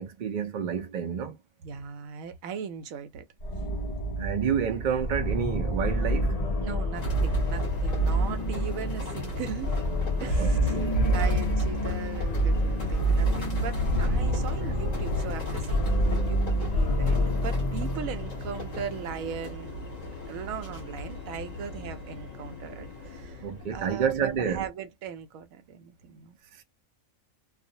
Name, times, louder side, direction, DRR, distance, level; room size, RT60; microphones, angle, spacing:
voice 1, 0.0-1.4 4.2-6.3 10.2-10.5 10.7-11.0 23.4-24.6, right 7 dB, 60° right, 0.4 m, -29 dB
voice 2, 1.6-3.2 6.6-9.8 10.2-19.8 20.3-26.4, right 7 dB, 80° right, 1.0 m, -39 dB
sound 1, 3.4-19.1, right 1 dB, 55° left, 0.4 m, -27 dB
sound 2, 7.0-24.7, left 2 dB, 35° left, 1.0 m, -36 dB
2.4 x 2.0 x 2.7 m
omnidirectional pair, 1.4 m